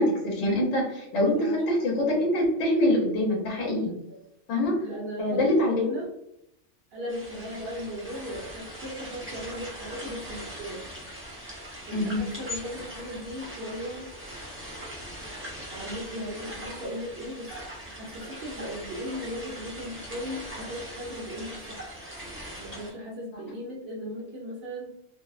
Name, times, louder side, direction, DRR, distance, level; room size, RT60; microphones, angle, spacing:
voice 1, 0.0-4.0 4.5-4.8 5.2-5.9 11.9-12.3, left 1 dB, 80° left, -4 dB, 1.0 m, -24 dB
voice 2, 1.1-1.9 3.9-4.2 4.8-6.1 6.9-10.9 11.9-14.1 15.7-17.5 17.8-21.9 22.6-25.0, equal, 65° right, -6 dB, 0.8 m, -37 dB
sound 1, 7.1-22.9, equal, 15° right, 0.5 m, -41 dB
2.6 x 2.0 x 2.3 m, 0.81 s
omnidirectional pair, 1.2 m